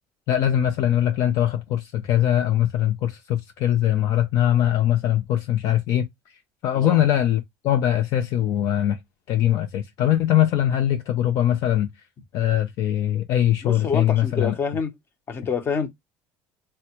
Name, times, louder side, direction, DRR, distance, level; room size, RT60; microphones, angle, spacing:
voice 1, 0.3-6.1 6.6-9.0 9.3-11.9 12.3-14.5, left 11 dB, 60° left, 0.5 m, -21 dB
voice 2, 13.6-14.9 15.3-15.9, left 5 dB, 35° left, 0.8 m, -27 dB
3.3 x 2.2 x 2.9 m
supercardioid pair, 110°, 6 cm